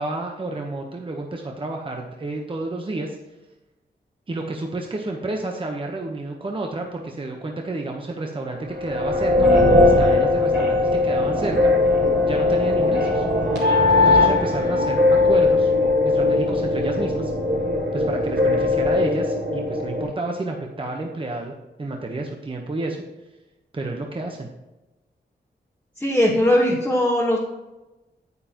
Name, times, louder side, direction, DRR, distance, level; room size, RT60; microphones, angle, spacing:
voice 1, 0.0-3.2 4.3-11.7 12.2-13.3 14.0-15.7 16.0-17.3 17.9-21.5 21.8-23.0 23.7-24.5, right 2 dB, 30° right, 1 dB, 1.0 m, -30 dB
sound 1, 8.7-20.0, left 2 dB, 80° right, 3.2 m, -19 dB
voice 2, 26.0-27.4, left 1 dB, 10° left, -5 dB, 1.4 m, -19 dB
9.5 x 9.3 x 3.0 m, 1.0 s
wide cardioid pair, 140°, 18 cm